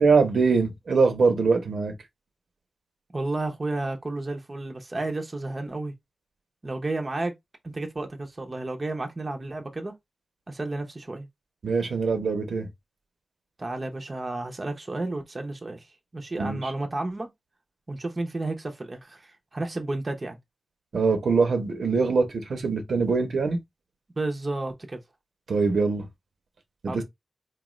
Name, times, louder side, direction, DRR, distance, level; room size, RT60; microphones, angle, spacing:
voice 1, 0.0-1.9 11.6-12.7 16.4-16.7 20.9-23.6 25.5-26.1 26.8-27.0, right 4 dB, 75° right, 0.9 m, -23 dB
voice 2, 3.1-5.9 6.6-7.3 7.6-9.9 10.5-11.3 13.6-15.9 16.1-17.3 17.9-20.4 24.2-25.0 26.9-27.0, right 2 dB, 30° right, 0.7 m, -32 dB
4.6 x 2.3 x 3.1 m
wide cardioid pair, 135°, 0 cm